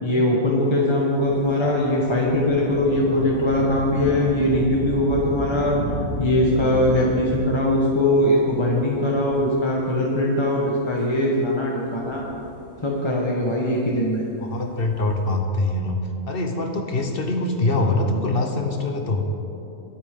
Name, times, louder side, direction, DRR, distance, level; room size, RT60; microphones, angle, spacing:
voice 1, 0.0-5.8 6.2-12.2 12.8-14.2, left 1 dB, 20° left, -3 dB, 1.2 m, -21 dB
Thunder / Rain, 1.0-10.0 10.7-10.8 11.8-13.1 14.6-15.3, equal, 15° right, 2.2 m, -33 dB
voice 2, 14.4-19.3, left 2 dB, 45° left, 4 dB, 1.1 m, -24 dB
21.5 x 8.8 x 3.7 m, 2.9 s
omnidirectional pair, 1.5 m